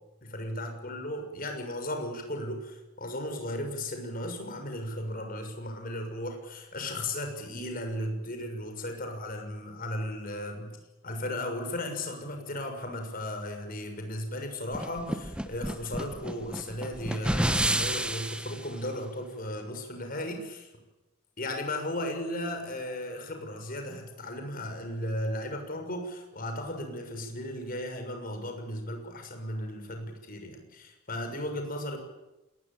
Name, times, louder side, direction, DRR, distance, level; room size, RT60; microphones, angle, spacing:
voice 1, 0.2-10.7 11.0-20.7 21.4-32.0, left 1 dB, 40° left, 5 dB, 6.5 m, -35 dB
sound 1, 14.7-18.6, right 1 dB, 5° right, 1.2 m, -30 dB
26.5 x 21.5 x 9.0 m, 1.0 s
head